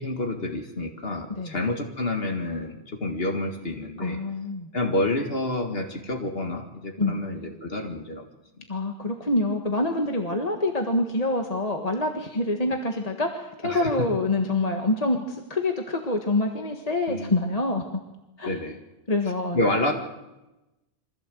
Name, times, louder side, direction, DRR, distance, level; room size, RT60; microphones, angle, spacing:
voice 1, 0.0-4.2 4.7-8.2 13.6-14.1 17.1-17.3 18.4-18.8 19.5-19.9, left 2 dB, 70° left, 4 dB, 2.2 m, -28 dB
voice 2, 4.0-4.7 7.0-7.2 8.7-17.8 18.4-18.5 19.1-19.6, left 2 dB, 40° left, 3 dB, 1.6 m, -26 dB
24.0 x 15.5 x 7.7 m, 1.0 s
omnidirectional pair, 1.1 m